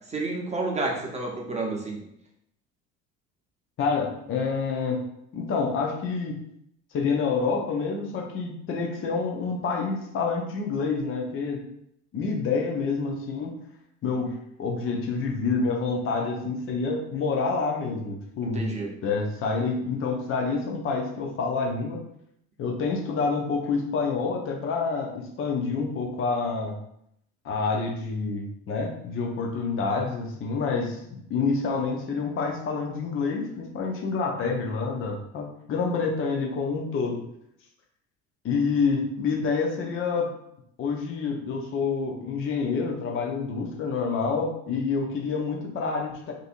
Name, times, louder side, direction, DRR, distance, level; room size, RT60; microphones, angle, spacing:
voice 1, 0.1-2.0 18.5-18.9, right 3 dB, 15° right, -2 dB, 0.8 m, -30 dB
voice 2, 3.8-5.0 5.3-6.4 6.9-11.6 12.1-13.6 14.0-14.3 14.6-18.6 19.0-22.0 22.6-26.8 27.4-37.2 38.4-40.3 40.8-46.3, left 4 dB, 30° left, 1 dB, 0.6 m, -28 dB
2.7 x 2.5 x 2.5 m, 0.75 s
figure-of-eight pair, 60°, 42 cm